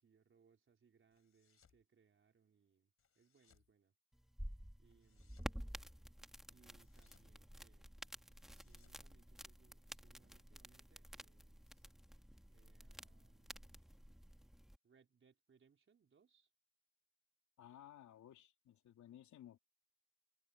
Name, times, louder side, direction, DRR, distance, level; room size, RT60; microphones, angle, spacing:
voice 1, 0.0-4.0 4.8-5.7 6.5-7.9 8.5-11.9 12.5-13.8 14.8-16.5, right 6 dB, 40° right, 4.2 m, -73 dB
sound 1, 1.1-1.8 3.0-3.7 4.8-5.6 6.6-7.3 8.3-9.8, left 7 dB, 50° left, 4.4 m, -75 dB
sound 2, 4.1-14.8, equal, ahead, 2.0 m, -52 dB
voice 2, 17.6-19.6, left 11 dB, 70° left, 3.5 m, -58 dB
cardioid pair, 90°, 30 cm